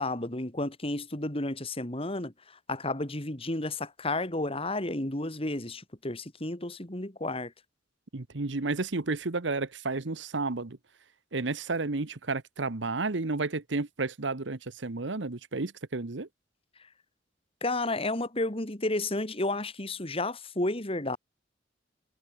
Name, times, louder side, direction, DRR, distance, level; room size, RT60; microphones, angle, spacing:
voice 1, 0.0-2.3 2.7-7.5 17.6-21.2, left 2 dB, 30° left, 2.8 m, -32 dB
voice 2, 8.1-10.8 11.3-16.3, right 3 dB, 75° right, 1.1 m, -32 dB
head